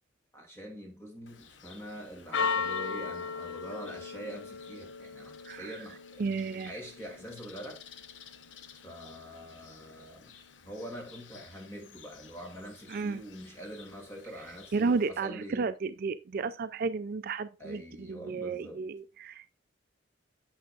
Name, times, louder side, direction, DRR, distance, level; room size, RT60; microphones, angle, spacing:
voice 1, 0.3-6.2 6.7-7.8 8.8-10.3 10.6-15.7 17.6-18.8, equal, 15° left, 2.5 m, -44 dB
Church bell, 1.3-15.1, left 5 dB, 80° left, 0.8 m, -40 dB
voice 2, 5.4-5.8 6.2-6.7 12.9-13.2 14.7-19.5, right 4 dB, 55° right, 0.4 m, -32 dB
8.6 x 6.3 x 2.4 m
head